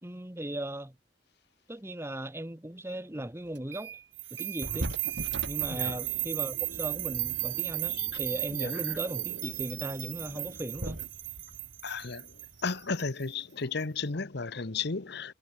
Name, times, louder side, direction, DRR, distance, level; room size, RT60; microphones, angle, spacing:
voice 1, 0.0-0.9 1.7-4.0 4.4-4.9 5.5-11.0, right 1 dB, 15° right, 1.2 m, -37 dB
sound 1, 3.6-4.1 4.4-12.8, right 2 dB, 65° right, 2.4 m, -42 dB
sound 2, 4.2-13.2, right 18 dB, 90° right, 1.6 m, -35 dB
voice 2, 5.7-6.0 7.9-8.1 8.5-8.7 11.8-12.3 12.6-15.3, left 4 dB, 60° left, 1.1 m, -34 dB
head